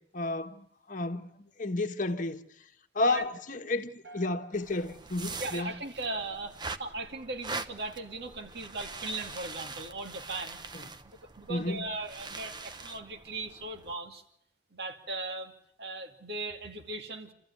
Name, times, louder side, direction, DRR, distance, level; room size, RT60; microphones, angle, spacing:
voice 1, 0.1-2.4 2.9-5.8 11.5-11.8, left 2 dB, 45° left, 1.4 m, -32 dB
sound 1, 4.0-6.3, right 1 dB, 85° right, 5.1 m, -56 dB
sound 2, 4.5-13.9, right 3 dB, 25° right, 0.9 m, -43 dB
voice 2, 5.4-10.6 11.0-14.2 14.7-15.5 15.8-17.3, right 2 dB, 65° right, 2.6 m, -38 dB
28.0 x 14.5 x 9.7 m
head